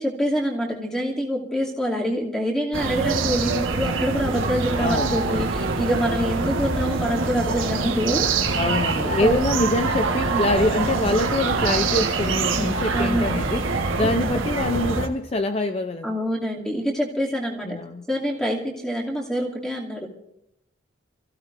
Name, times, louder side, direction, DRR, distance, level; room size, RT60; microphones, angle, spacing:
voice 1, 0.0-8.3 9.2-9.4 10.3-10.4 12.9-13.4 16.0-17.8 18.1-20.1, equal, 5° left, -3 dB, 2.6 m, -26 dB
sound 1, 2.7-15.1, right 3 dB, 90° right, 1.5 m, -24 dB
voice 2, 4.8-5.1 8.5-16.2 17.6-18.1, left 1 dB, 30° left, 7 dB, 0.5 m, -25 dB
29.5 x 15.5 x 2.6 m, 0.82 s
head